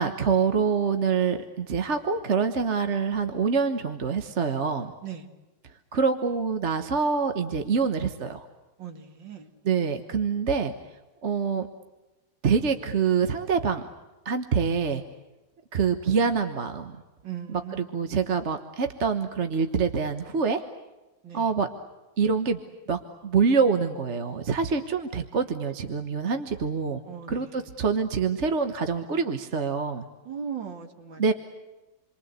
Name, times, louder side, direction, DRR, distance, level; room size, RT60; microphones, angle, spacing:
voice 1, 0.0-4.9 5.9-8.5 9.6-10.7 11.2-11.7 12.4-13.8 14.2-15.0 15.7-17.0 17.5-20.6 21.3-21.7 22.2-22.6 22.9-27.0 27.3-30.1 31.2-31.3, right 5 dB, 40° right, 7 dB, 1.4 m, -25 dB
voice 2, 8.8-9.5 17.2-17.8 21.2-21.5 27.0-27.6 30.3-31.3, right 7 dB, 75° right, 5 dB, 2.9 m, -38 dB
29.0 x 23.5 x 8.2 m, 1.1 s
omnidirectional pair, 2.0 m